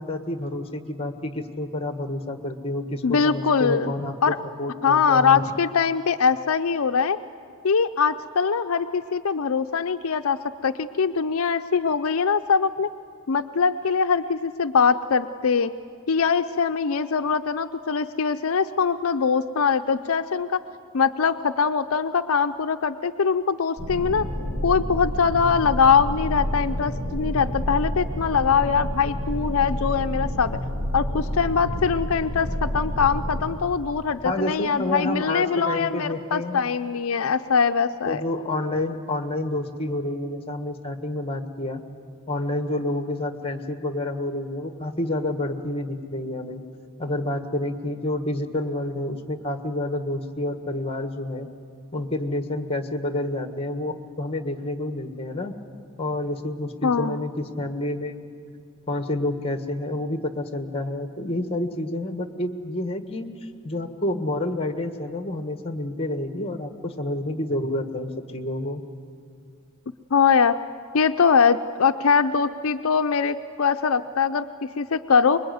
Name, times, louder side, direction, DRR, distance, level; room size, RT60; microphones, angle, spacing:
voice 1, 0.0-5.5 34.2-36.6 38.1-41.8 42.3-46.6 47.0-51.5 51.9-55.5 56.0-58.2 58.9-63.3 63.6-68.8, left 1 dB, 25° left, 8 dB, 1.5 m, -29 dB
voice 2, 3.0-3.9 4.2-4.4 4.8-7.2 7.6-12.9 13.3-15.7 16.1-20.6 20.9-24.3 24.6-30.6 30.9-38.2 56.8-57.2 70.1-70.6 70.9-74.5 74.8-75.4, left 6 dB, 70° left, 8 dB, 0.5 m, -22 dB
sound 1, 23.8-33.4, equal, 85° right, 5.0 m, -29 dB
25.5 x 22.0 x 9.4 m, 2.4 s
head